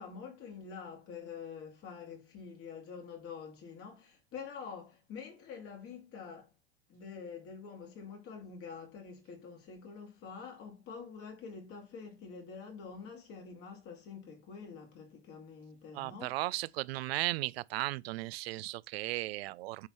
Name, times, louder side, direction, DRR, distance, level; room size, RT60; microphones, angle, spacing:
voice 1, 0.0-6.5 6.9-16.3, left 6 dB, 45° left, 2.5 m, -46 dB
voice 2, 15.9-19.9, right 19 dB, 70° right, 0.5 m, -36 dB
8.7 x 3.6 x 3.1 m
hypercardioid pair, 100°, 32 cm